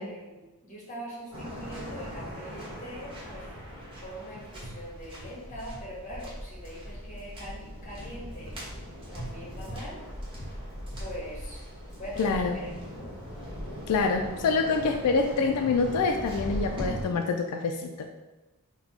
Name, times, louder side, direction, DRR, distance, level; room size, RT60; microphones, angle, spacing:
voice 1, 0.0-3.5 4.0-8.6 9.1-10.0 11.0-11.6 11.9-13.1, equal, 35° left, -4 dB, 1.3 m, -42 dB
Waves surf, 1.3-17.0, equal, 25° right, 1.1 m, -39 dB
voice 2, 12.2-12.6 13.9-18.1, left 4 dB, 90° left, 4 dB, 0.4 m, -26 dB
4.0 x 2.2 x 4.4 m, 1.1 s
head